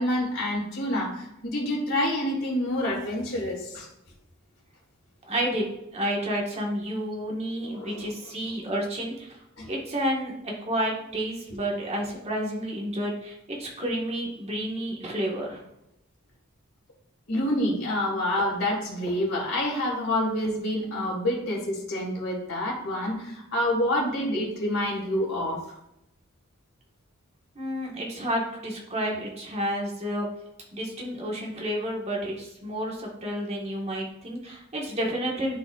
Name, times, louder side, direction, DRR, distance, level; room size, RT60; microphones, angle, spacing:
voice 1, 0.0-3.9 7.6-8.1 9.6-9.7 17.3-25.6, left 1 dB, 65° left, -3 dB, 2.6 m, -27 dB
voice 2, 5.3-15.6 27.5-30.3 30.7-35.6, equal, 30° right, -1 dB, 1.6 m, -30 dB
12.0 x 4.1 x 2.5 m, 0.84 s
head